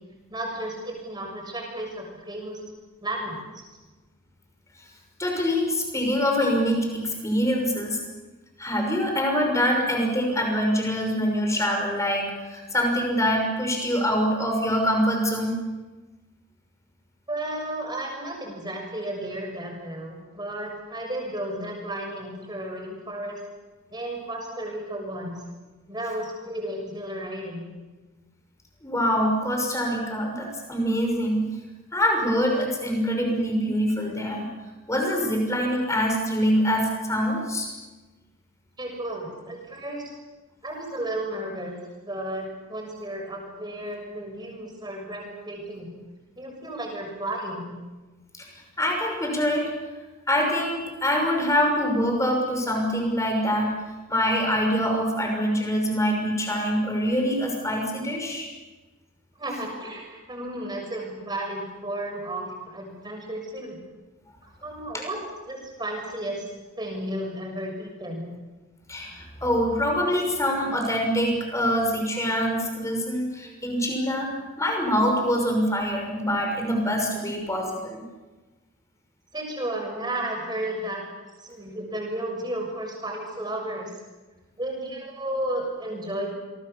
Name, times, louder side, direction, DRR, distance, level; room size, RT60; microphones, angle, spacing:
voice 1, 0.3-2.6 3.0-3.4 17.3-23.4 23.9-25.4 25.9-27.7 38.8-40.0 40.6-41.7 42.0-45.9 46.4-47.7 59.4-63.8 64.6-65.2 65.5-66.5 66.8-68.3 79.3-81.0 81.4-83.9 84.6-86.3, right 1 dB, 20° right, 1 dB, 7.0 m, -33 dB
voice 2, 5.2-8.0 8.6-15.6 28.8-31.5 31.9-34.5 34.9-37.7 48.3-49.7 50.3-53.7 54.1-58.5 68.9-74.3 74.6-78.0, equal, 15° left, 2 dB, 6.2 m, -24 dB
28.5 x 23.0 x 7.1 m, 1.2 s
head